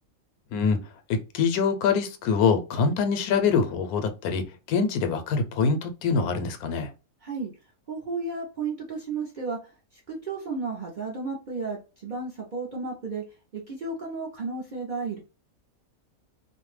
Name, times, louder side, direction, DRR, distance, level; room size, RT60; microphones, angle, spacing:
voice 1, 1.1-6.9, left 5 dB, 90° left, 1.1 m, -24 dB
voice 2, 7.9-9.6 9.9-13.2 13.5-15.2, right 4 dB, 55° right, 0.5 m, -33 dB
2.5 x 2.1 x 3.1 m
omnidirectional pair, 1.5 m